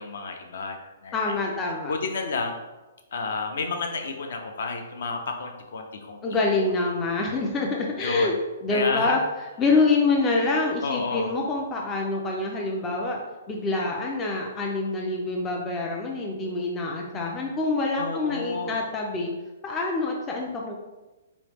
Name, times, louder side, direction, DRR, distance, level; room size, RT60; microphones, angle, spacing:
voice 1, 0.0-1.4 1.9-2.6 3.1-6.7 8.0-8.4 8.7-9.2 10.8-11.4 18.0-18.8, left 4 dB, 60° left, 4 dB, 0.6 m, -31 dB
voice 2, 1.1-1.9 6.2-8.3 8.6-9.2 9.6-13.2 13.5-19.3 19.6-20.8, left 3 dB, 15° left, -1 dB, 0.3 m, -26 dB
3.9 x 3.0 x 3.4 m, 1.1 s
hypercardioid pair, 175°, 0 cm